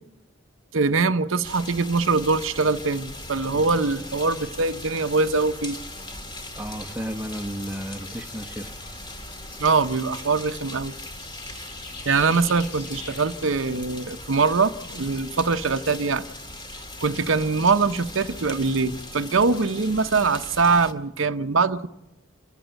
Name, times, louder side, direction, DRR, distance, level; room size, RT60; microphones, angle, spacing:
voice 1, 0.7-5.8 9.6-10.9 12.1-16.2 17.0-21.9, right 4 dB, 70° right, 0.7 m, -23 dB
sound 1, 1.4-20.9, left 1 dB, 20° left, 1.9 m, -39 dB
sound 2, 2.1-16.0, left 4 dB, 55° left, 4.6 m, -49 dB
sound 3, 4.7-10.3, left 1 dB, 70° left, 7.4 m, -53 dB
voice 2, 6.6-8.7, equal, 5° right, 0.9 m, -33 dB
28.0 x 13.5 x 8.9 m
head